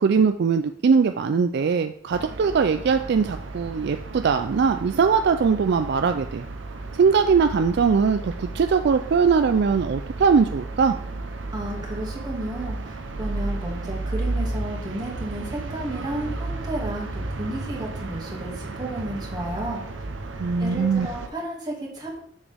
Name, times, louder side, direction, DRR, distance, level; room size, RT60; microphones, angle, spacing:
voice 1, 0.0-6.5 6.9-11.0 20.4-21.1, right 5 dB, 60° right, 8 dB, 0.4 m, -21 dB
sound 1, 2.1-21.3, right 2 dB, 80° right, 0.7 m, -33 dB
voice 2, 11.5-19.8 20.6-22.2, right 1 dB, 20° right, -3 dB, 2.1 m, -32 dB
7.3 x 6.9 x 3.4 m, 0.62 s
head